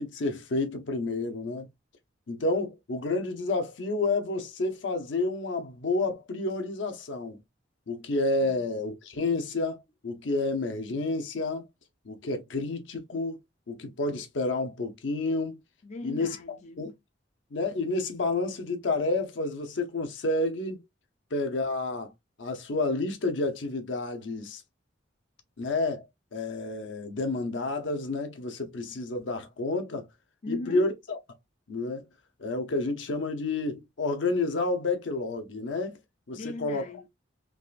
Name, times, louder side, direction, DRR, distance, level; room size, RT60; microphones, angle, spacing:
voice 1, 0.0-1.7 2.3-7.4 7.9-11.6 12.0-13.4 13.7-15.6 16.0-16.4 16.8-16.9 17.5-20.8 21.3-22.1 22.4-24.6 25.6-26.0 26.3-30.1 30.5-31.2 31.7-32.1 32.4-36.0 36.3-36.8, left 2 dB, 85° left, 0.7 m, -30 dB
voice 2, 15.8-16.9 30.4-30.9 36.3-37.1, left 2 dB, 40° left, 0.4 m, -39 dB
3.5 x 2.4 x 2.3 m
head